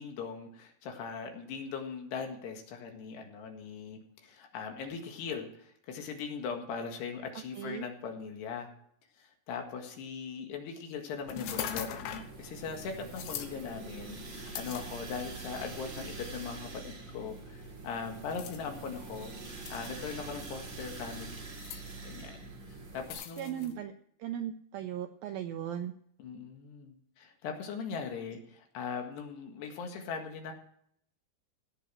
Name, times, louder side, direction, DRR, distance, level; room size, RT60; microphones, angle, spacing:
voice 1, 0.0-8.7 9.2-11.9 12.4-21.5 22.0-23.8 26.2-30.5, left 5 dB, 75° left, 4 dB, 3.8 m, -40 dB
sound 1, 11.2-23.1, right 3 dB, 30° right, 3.8 m, -45 dB
sound 2, 11.3-12.3 13.1-13.5 14.6-15.4 16.2-16.3 18.3-18.6 19.7-20.1 21.4-21.8 23.1-23.7, left 9 dB, 90° left, 3.4 m, -40 dB
voice 2, 23.4-23.9 24.2-25.9, right 10 dB, 85° right, 7 dB, 2.1 m, -37 dB
17.5 x 7.0 x 6.1 m, 0.66 s
omnidirectional pair, 5.0 m